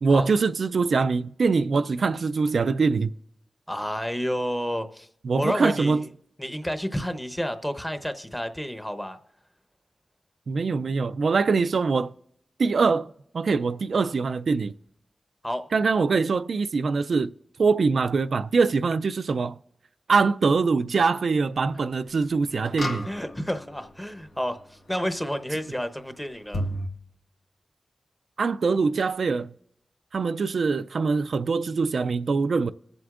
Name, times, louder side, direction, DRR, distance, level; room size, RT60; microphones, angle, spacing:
voice 1, 0.0-3.1 5.2-6.1 10.5-12.1 12.6-13.1 13.3-14.7 15.7-17.3 17.6-19.6 20.1-23.1 28.4-29.5 30.1-32.7, right 4 dB, 75° right, 0.3 m, -23 dB
voice 2, 3.7-5.1 5.4-6.1 6.4-9.2 15.4-15.6 23.0-26.7, equal, 10° left, 0.8 m, -30 dB
sound 1, 22.7-23.7 26.5-26.9, equal, 85° left, 1.7 m, -31 dB
21.0 x 7.8 x 2.4 m
wide cardioid pair, 115°, 0 cm